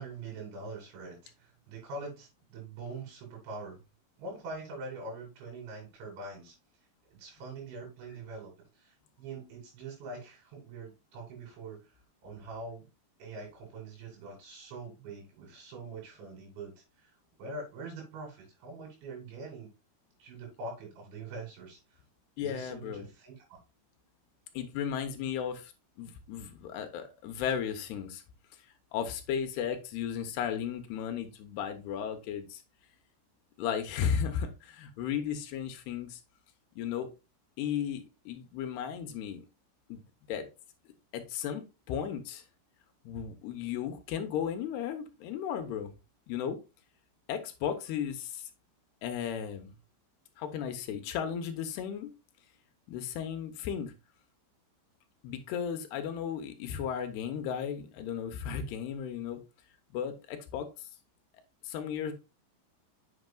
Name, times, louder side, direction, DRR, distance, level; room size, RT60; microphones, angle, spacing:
voice 1, 0.0-3.8 4.2-6.6 7.1-11.9 12.2-12.9 13.2-17.1 17.4-19.7 20.2-22.0 22.4-23.4, right 3 dB, 85° right, 5.2 m, -44 dB
voice 2, 22.4-23.1 24.5-25.7 26.0-28.2 28.9-32.6 33.6-36.2 36.8-37.1 37.6-39.4 39.9-40.0 40.3-40.5 41.1-42.4 43.0-45.9 46.3-46.6 47.3-48.5 49.0-49.8 50.4-52.1 52.9-53.9 55.2-59.4 59.9-60.9 61.6-62.1, left 8 dB, 75° left, 2.7 m, -35 dB
8.1 x 6.5 x 2.3 m
omnidirectional pair, 5.1 m